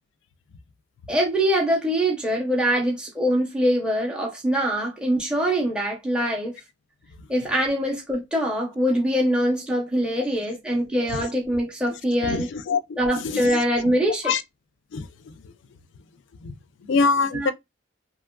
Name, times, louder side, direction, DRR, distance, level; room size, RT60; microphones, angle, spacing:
voice 1, 1.1-6.6 7.3-12.5 13.0-14.3 17.3-17.5, equal, 5° right, 0.6 m, -23 dB
voice 2, 12.2-13.6 14.2-14.4 14.9-15.1 16.4-16.5 16.9-17.5, left 4 dB, 60° left, 0.3 m, -24 dB
2.8 x 2.3 x 2.2 m
head